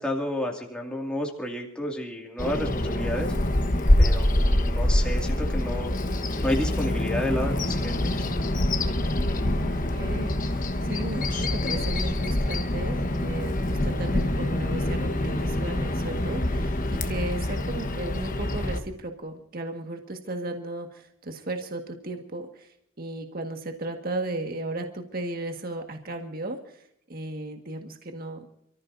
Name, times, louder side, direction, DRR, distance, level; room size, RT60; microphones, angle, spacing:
voice 1, 0.0-3.3 4.0-5.9 6.4-8.2, left 1 dB, 5° left, 0 dB, 2.3 m, -31 dB
Bird vocalization bird call bird song, 2.4-18.8, left 1 dB, 40° left, 1.2 m, -25 dB
voice 2, 9.2-22.7 23.0-26.7 27.1-28.5, right 2 dB, 45° right, 4 dB, 1.7 m, -35 dB
28.5 x 14.5 x 2.7 m, 0.70 s
head